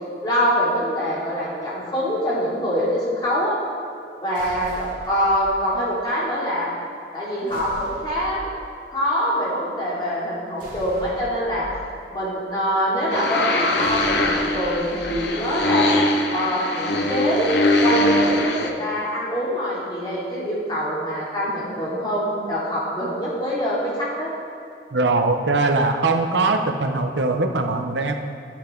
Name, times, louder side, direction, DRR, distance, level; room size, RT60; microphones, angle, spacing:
voice 1, 0.2-3.5 4.2-6.7 7.1-8.5 8.9-11.7 12.1-17.5 17.8-24.3, equal, 25° left, -8 dB, 2.8 m, -24 dB
sound 1, 4.3-5.5 7.5-8.5 10.6-11.7 13.8-15.3, equal, 45° right, 2.3 m, -40 dB
sound 2, 13.1-18.7, left 1 dB, 75° left, 0.9 m, -22 dB
voice 2, 24.9-28.1, right 3 dB, 85° right, 5 dB, 0.8 m, -21 dB
12.0 x 8.6 x 3.8 m, 2.5 s
head